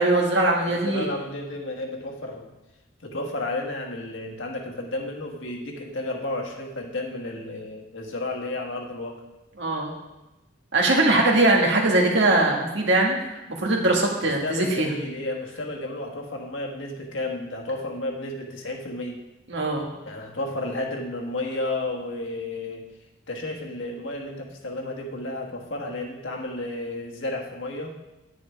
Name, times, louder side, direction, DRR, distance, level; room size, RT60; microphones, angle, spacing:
voice 1, 0.0-1.1 9.6-9.9 10.7-13.2 13.6-14.9 19.5-19.9, right 2 dB, 60° right, 0 dB, 1.8 m, -21 dB
voice 2, 0.7-2.5 3.0-9.2 14.2-19.2 20.0-22.9 23.3-27.9, left 2 dB, 70° left, 1 dB, 1.5 m, -32 dB
9.9 x 9.2 x 3.5 m, 1.0 s
head